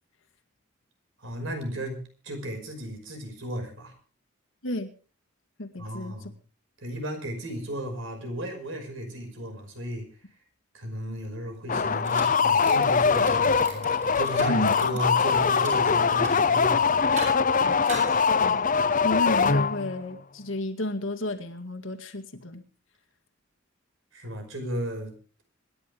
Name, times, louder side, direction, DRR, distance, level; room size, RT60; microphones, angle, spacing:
voice 1, 1.2-3.9 5.8-6.4 6.8-10.1 10.7-17.1 24.1-25.1, equal, 70° right, 4 dB, 5.4 m, -34 dB
voice 2, 5.6-6.3 14.5-14.7 17.6-17.9 18.4-18.7 19.0-22.6, left 1 dB, 70° left, 7 dB, 2.1 m, -32 dB
sound 1, 11.7-20.0, left 5 dB, 40° left, 0.8 m, -22 dB
sound 2, 12.0-12.2 12.5-13.3 13.6-15.7 16.0-16.5 16.9-17.3 17.8-19.2, right 3 dB, 35° right, 7.7 m, -41 dB
26.0 x 11.0 x 3.5 m, 0.38 s
head